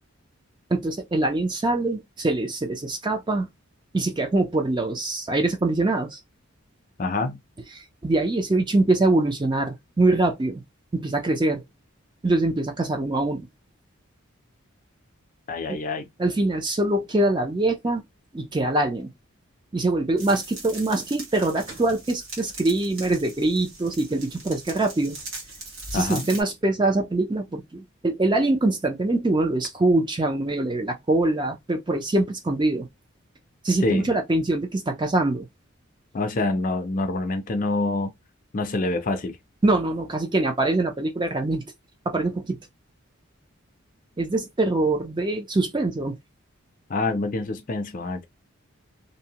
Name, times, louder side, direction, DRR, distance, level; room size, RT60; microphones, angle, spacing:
voice 1, 0.7-3.5 3.9-6.2 7.8-10.6 10.9-11.6 12.2-13.5 15.7-15.8 16.2-18.0 18.3-19.1 19.7-25.2 25.9-32.9 33.6-35.5 39.6-41.6 42.1-42.6 44.2-46.2, right 2 dB, 20° right, 0.4 m, -23 dB
voice 2, 7.0-7.4 15.5-16.1 25.9-26.3 33.8-34.1 36.1-38.1 38.5-39.4 46.9-48.2, left 2 dB, 40° left, 0.4 m, -26 dB
sound 1, 20.2-26.4, right 2 dB, 70° right, 1.2 m, -40 dB
2.7 x 2.1 x 2.8 m
head